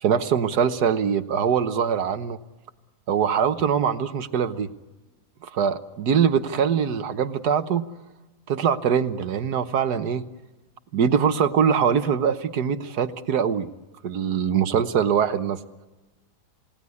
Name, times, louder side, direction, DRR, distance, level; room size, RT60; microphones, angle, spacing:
voice 1, 0.0-2.4 3.1-4.7 5.4-7.8 8.5-10.2 10.9-13.7 14.0-15.6, right 7 dB, 75° right, 11 dB, 1.6 m, -23 dB
29.0 x 18.5 x 9.7 m, 1.2 s
omnidirectional pair, 1.8 m